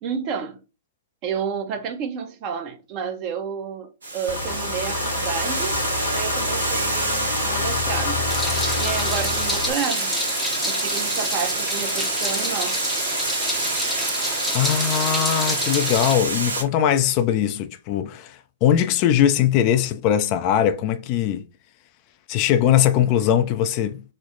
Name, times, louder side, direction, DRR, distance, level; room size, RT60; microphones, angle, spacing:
voice 1, 0.0-0.6 1.2-5.8 6.1-8.2 8.8-10.2 10.7-12.8, right 6 dB, 40° right, 0.8 m, -30 dB
Water, 4.0-16.6, right 2 dB, 80° right, 1.0 m, -27 dB
Engine, 4.3-9.7, left 3 dB, 65° left, 1.0 m, -27 dB
Meow, 8.3-16.1, left 1 dB, ahead, 0.7 m, -29 dB
voice 2, 14.5-21.4 22.3-24.0, left 10 dB, 40° left, 0.4 m, -20 dB
3.1 x 2.1 x 3.8 m
figure-of-eight pair, 110°, 0 cm